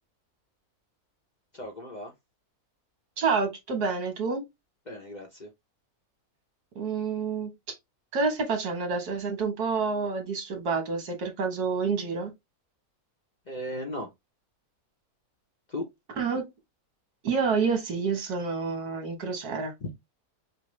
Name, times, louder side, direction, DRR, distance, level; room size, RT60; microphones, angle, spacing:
voice 1, 1.5-2.1 4.9-5.5 13.5-14.1 15.7-15.9 19.8-19.9, left 1 dB, 40° left, 0.7 m, -36 dB
voice 2, 3.2-4.5 6.7-7.7 8.1-12.3 16.2-16.5 17.2-19.7, right 5 dB, 85° right, 1.7 m, -28 dB
5.5 x 2.0 x 3.1 m
omnidirectional pair, 1.6 m